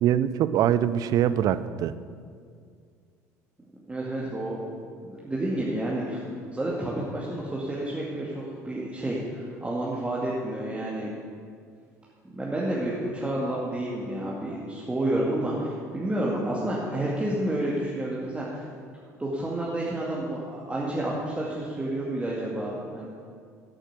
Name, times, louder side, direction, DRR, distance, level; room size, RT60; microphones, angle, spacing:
voice 1, 0.0-1.9, right 10 dB, 50° right, 15 dB, 0.5 m, -23 dB
voice 2, 3.9-4.7 5.0-6.2 6.5-11.1 12.3-18.7 19.2-23.0, right 1 dB, 15° right, -5 dB, 2.2 m, -30 dB
12.0 x 8.9 x 6.8 m, 2.2 s
figure-of-eight pair, 60°, 8 cm